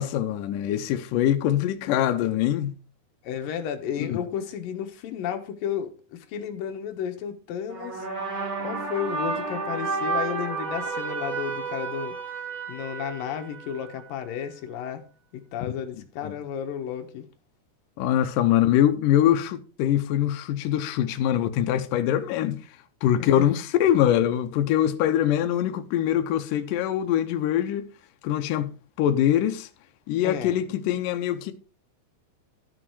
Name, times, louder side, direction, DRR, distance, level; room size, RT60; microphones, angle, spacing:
voice 1, 0.0-2.7 4.0-4.2 16.2-16.3 18.0-22.6 23.0-27.9 28.2-28.7 29.0-29.7 30.1-31.5, left 11 dB, 90° left, 1.9 m, -23 dB
voice 2, 3.2-8.1 8.6-12.2 12.7-15.1 15.3-17.3 23.2-23.5 30.2-30.6, left 8 dB, 65° left, 2.6 m, -33 dB
sound 1, 7.7-14.1, right 4 dB, 35° right, 2.4 m, -31 dB
13.5 x 6.2 x 4.7 m
omnidirectional pair, 4.9 m